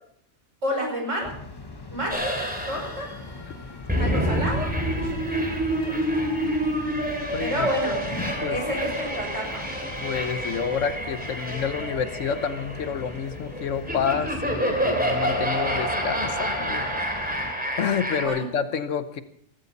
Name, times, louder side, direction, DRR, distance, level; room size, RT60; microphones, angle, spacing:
voice 1, 0.6-1.3 1.9-2.4 2.7-3.1 4.0-5.4 5.8-6.0 7.4-8.0 8.5-9.6 18.2-18.5, equal, 70° right, 1 dB, 5.8 m, -29 dB
sound 1, 1.2-17.5, left 3 dB, 20° left, 1.0 m, -40 dB
sound 2, 2.1-18.2, right 1 dB, 5° right, 3.0 m, -28 dB
voice 2, 7.3-7.7 8.4-8.6 10.0-16.8 17.8-19.2, left 7 dB, 75° left, 11 dB, 1.3 m, -28 dB
17.0 x 16.0 x 4.1 m, 0.68 s
omnidirectional pair, 1.3 m